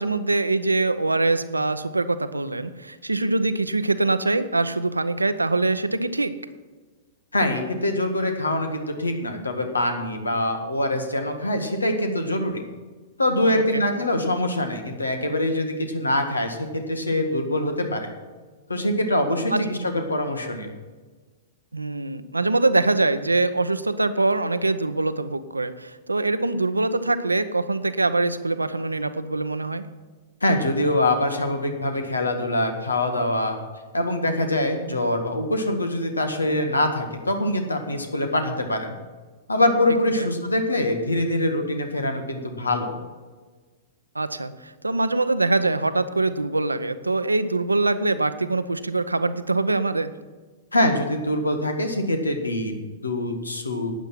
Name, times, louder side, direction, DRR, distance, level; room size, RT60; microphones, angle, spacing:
voice 1, 0.0-6.3 13.5-13.8 19.5-19.7 21.7-29.8 40.2-40.3 44.1-50.1, right 2 dB, 90° right, 12 dB, 0.7 m, -23 dB
voice 2, 7.3-12.6 13.2-18.1 18.7-20.7 30.4-33.6 33.9-38.9 39.5-43.0 50.7-53.9, left 1 dB, 85° left, 5 dB, 1.8 m, -24 dB
12.0 x 9.2 x 6.0 m, 1.4 s
figure-of-eight pair, 105°, 0 cm